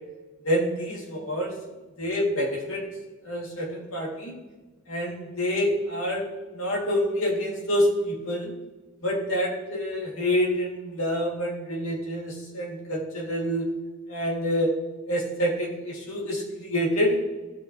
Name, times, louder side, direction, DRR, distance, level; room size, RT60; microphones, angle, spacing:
voice 1, 0.4-1.6 2.0-2.8 3.2-4.3 4.9-6.3 6.5-8.5 9.0-13.6 14.1-14.7 15.1-17.2, equal, 80° left, -2 dB, 3.0 m, -27 dB
17.5 x 5.9 x 3.3 m, 1.2 s
head